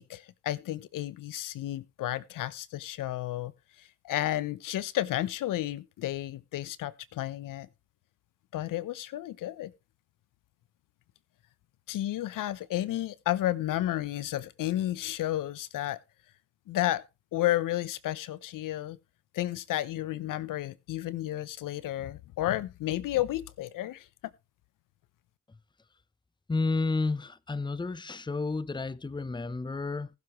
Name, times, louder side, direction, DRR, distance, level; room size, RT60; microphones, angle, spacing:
voice 1, 0.0-3.5 4.0-7.7 8.5-9.7 11.9-16.0 16.7-17.0 17.3-19.0 19.3-24.1, left 14 dB, 80° left, 0.8 m, -32 dB
voice 2, 26.5-30.1, left 3 dB, 15° left, 0.7 m, -31 dB
19.5 x 6.9 x 3.1 m
supercardioid pair, 55°, 32 cm